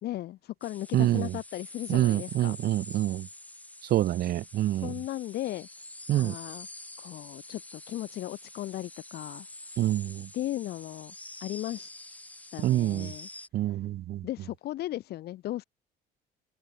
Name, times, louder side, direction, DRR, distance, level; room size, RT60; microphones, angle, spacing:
voice 1, 0.0-2.6 4.8-5.7 6.1-6.7 7.0-9.5 10.3-11.1 11.4-11.9 12.5-13.3 13.7-13.8 14.2-15.6, left 14 dB, 70° left, 3.0 m, -36 dB
sound 1, 0.6-13.5, left 1 dB, 10° left, 2.5 m, -46 dB
voice 2, 0.9-1.3 1.9-3.3 3.9-4.9 6.1-6.3 9.8-10.3 12.6-13.1 13.5-14.2, right 14 dB, 65° right, 0.9 m, -26 dB
cardioid pair, 110°, 17 cm